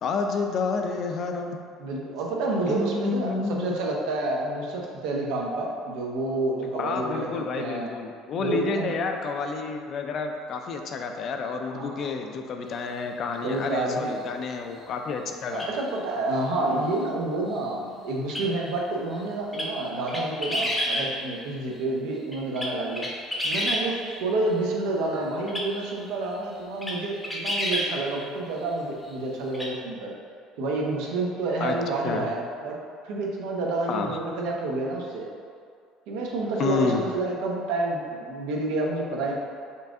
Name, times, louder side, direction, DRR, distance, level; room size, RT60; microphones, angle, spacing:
voice 1, 0.0-1.6 2.7-3.8 6.8-15.7 31.6-31.8 32.0-32.3 33.9-34.2 36.6-37.0, left 4 dB, 45° left, 4 dB, 0.4 m, -29 dB
voice 2, 1.8-7.9 8.4-8.9 11.7-12.1 13.4-14.1 15.5-23.1 23.4-30.1 30.6-32.8 33.0-35.3 36.1-39.3, right 2 dB, 80° right, -1 dB, 0.8 m, -29 dB
sound 1, 15.5-15.7 18.3-18.5 19.5-19.7 20.1-21.1 22.3-23.8 25.5-25.7 26.3-26.4 26.8-27.0 27.2-27.9 29.5-29.7, equal, 10° left, 0.7 m, -28 dB
5.5 x 2.6 x 3.6 m, 2.2 s
cardioid pair, 120°, 0 cm